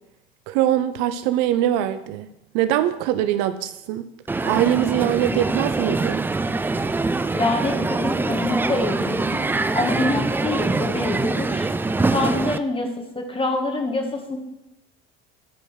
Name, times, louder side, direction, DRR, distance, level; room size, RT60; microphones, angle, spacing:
voice 1, 0.5-2.3 2.5-4.1 4.4-6.2, right 12 dB, 60° right, 12 dB, 0.7 m, -22 dB
Crowd, 4.3-12.6, right 3 dB, 5° right, 0.4 m, -24 dB
voice 2, 7.3-9.4 9.7-11.7 12.1-12.9 13.2-14.4, left 2 dB, 15° left, 3 dB, 2.2 m, -25 dB
11.0 x 5.2 x 6.4 m, 0.91 s
hypercardioid pair, 75°, 31 cm